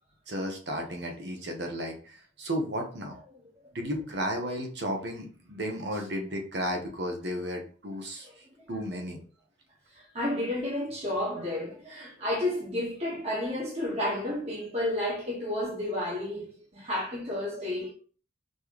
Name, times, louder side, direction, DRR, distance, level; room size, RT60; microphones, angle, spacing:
voice 1, 0.3-3.1 3.7-9.2, equal, 60° right, 1.0 m, -34 dB
voice 2, 10.1-17.9, left 1 dB, 30° right, 1.4 m, -31 dB
4.3 x 3.4 x 3.0 m
head